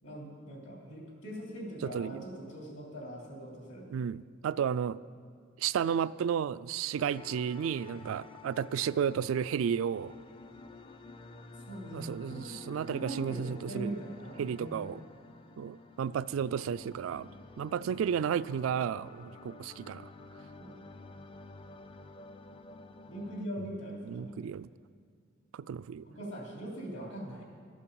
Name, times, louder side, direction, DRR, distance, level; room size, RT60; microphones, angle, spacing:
voice 1, 0.0-4.0 11.7-12.5 12.9-14.9 20.6-21.0 23.1-24.4 26.1-27.4, right 1 dB, 65° left, -2 dB, 3.2 m, -42 dB
voice 2, 1.8-2.2 3.9-5.0 5.6-10.2 11.9-14.0 14.4-15.0 15.6-20.1 24.0-24.7 25.5-26.1, right 8 dB, 80° right, 17 dB, 0.3 m, -33 dB
sound 1, 7.0-23.5, left 3 dB, 25° left, 0.5 m, -51 dB
12.5 x 8.4 x 7.0 m, 2.1 s
head